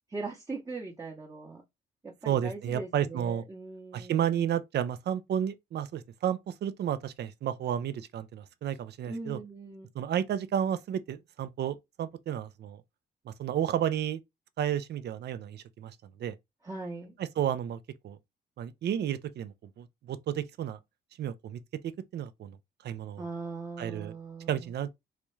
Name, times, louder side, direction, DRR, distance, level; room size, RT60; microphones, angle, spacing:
voice 1, 0.1-1.6 2.0-4.5 9.0-9.9 16.6-17.2 23.2-24.7, right 3 dB, 15° right, 0.8 m, -40 dB
voice 2, 2.3-3.4 3.9-9.4 9.9-12.8 13.3-14.2 14.6-16.3 17.2-17.8 18.0-18.2 18.6-20.8 21.2-22.6 22.8-23.3 23.8-24.1 24.5-25.0, right 10 dB, 55° right, 0.5 m, -32 dB
4.0 x 2.3 x 3.1 m
cardioid pair, 90°, 20 cm